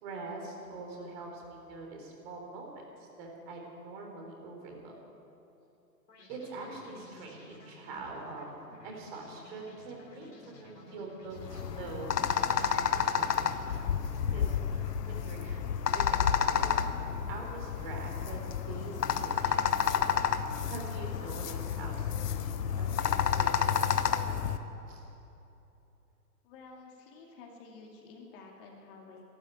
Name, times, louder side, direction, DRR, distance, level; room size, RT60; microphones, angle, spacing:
voice 1, 0.0-2.7 3.0-4.9 6.3-8.5 8.8-13.7 14.3-15.6 15.9-16.7 17.3-18.4 18.7-24.6 24.9-25.0, right 3 dB, 35° right, 0 dB, 3.9 m, -44 dB
sound 1, 6.1-15.1, left 2 dB, 90° left, 2.6 m, -54 dB
sound 2, 11.4-24.6, left 8 dB, 75° left, 1.1 m, -30 dB
voice 2, 26.4-29.2, left 4 dB, 35° left, 0 dB, 2.3 m, -51 dB
12.5 x 11.5 x 9.4 m, 2.9 s
hypercardioid pair, 135°, 49 cm